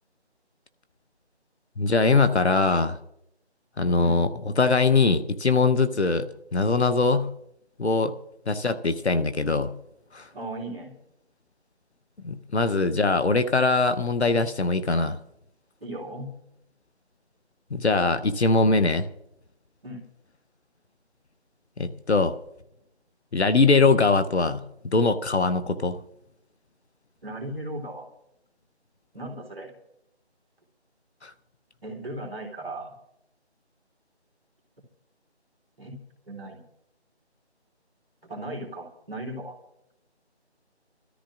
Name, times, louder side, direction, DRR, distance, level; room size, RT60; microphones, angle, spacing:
voice 1, 1.8-3.0 3.8-4.3 4.6-6.3 6.5-7.3 7.8-8.1 8.5-9.7 10.1-10.3 12.2-15.2 17.7-19.1 21.8-22.4 23.3-24.6 24.9-26.0 31.2-31.3, left 3 dB, 70° left, 11 dB, 0.9 m, -22 dB
voice 2, 10.3-10.9 15.8-16.3 19.8-20.0 27.2-28.1 29.1-29.7 31.8-32.9 35.8-36.0 36.3-36.6 38.2-39.6, right 1 dB, 5° right, -15 dB, 2.2 m, -36 dB
27.5 x 13.5 x 2.5 m, 0.82 s
figure-of-eight pair, 175°, 34 cm